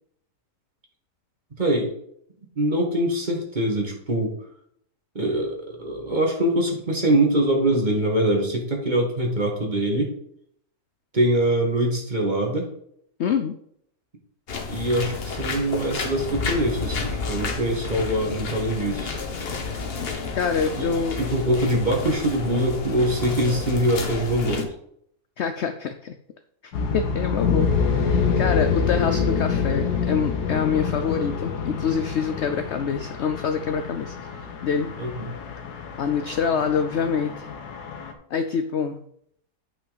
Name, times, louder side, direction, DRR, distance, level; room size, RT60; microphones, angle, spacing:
voice 1, 1.6-1.9 2.6-4.3 5.2-10.1 11.1-12.7 14.7-19.2 20.8-24.7 35.0-35.3, right 1 dB, 30° right, 1 dB, 1.7 m, -23 dB
voice 2, 13.2-13.6 20.3-21.2 25.4-26.1 26.9-27.7 28.0-34.9 36.0-37.5 38.3-39.0, left 6 dB, 65° left, 8 dB, 0.7 m, -26 dB
sound 1, 14.5-24.6, left 4 dB, 45° left, 1.1 m, -30 dB
sound 2, 26.7-38.1, left 5 dB, 85° left, 1.5 m, -26 dB
9.5 x 5.6 x 4.0 m, 0.69 s
omnidirectional pair, 1.7 m